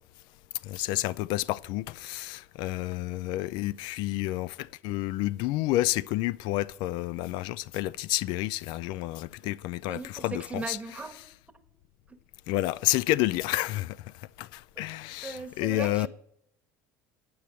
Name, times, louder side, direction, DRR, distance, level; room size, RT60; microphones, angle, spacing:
voice 1, 0.6-10.8 12.5-16.1, left 16 dB, 65° left, 0.4 m, -30 dB
voice 2, 9.9-11.3 12.1-12.2 14.8-16.1, right 3 dB, 15° right, 1.3 m, -39 dB
9.5 x 6.9 x 7.4 m
supercardioid pair, 90°, 8 cm